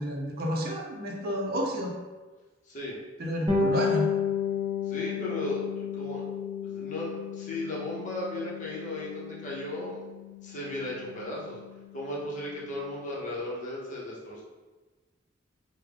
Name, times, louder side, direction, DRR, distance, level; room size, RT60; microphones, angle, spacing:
voice 1, 0.0-1.9 3.2-4.1, equal, 50° right, -1 dB, 0.6 m, -30 dB
voice 2, 2.6-3.0 4.8-6.2 6.6-10.0 10.4-11.6 11.9-14.4, left 1 dB, 40° left, -5 dB, 0.8 m, -35 dB
Bass guitar, 3.5-13.1, left 5 dB, 20° right, 0.8 m, -33 dB
3.5 x 2.2 x 3.3 m, 1.3 s
head